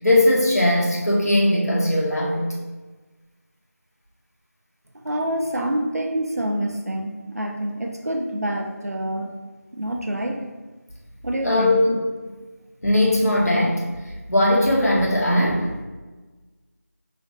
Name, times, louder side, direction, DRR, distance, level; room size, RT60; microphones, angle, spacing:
voice 1, 0.0-2.5 11.4-11.9 12.8-13.8 14.3-15.7, left 1 dB, 75° left, -4 dB, 1.5 m, -19 dB
voice 2, 5.0-9.3 9.7-10.5 11.2-11.8, right 1 dB, 70° right, 2 dB, 0.6 m, -27 dB
5.3 x 3.8 x 2.5 m, 1.3 s
figure-of-eight pair, 170°, 9 cm